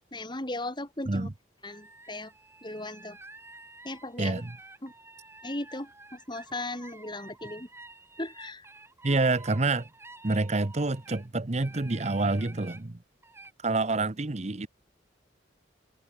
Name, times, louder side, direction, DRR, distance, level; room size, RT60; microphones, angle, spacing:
voice 1, 0.1-1.3 1.6-2.3 2.6-3.2 3.8-4.4 4.8-4.9 5.4-7.7 8.2-8.6, left 2 dB, 25° left, 4.4 m, -37 dB
sound 1, 1.7-11.3 11.6-12.8 13.2-13.5, right 2 dB, 15° right, 4.1 m, -50 dB
voice 2, 4.2-4.6 9.0-9.9 10.2-13.0 13.6-14.7, right 3 dB, 35° right, 0.9 m, -27 dB
head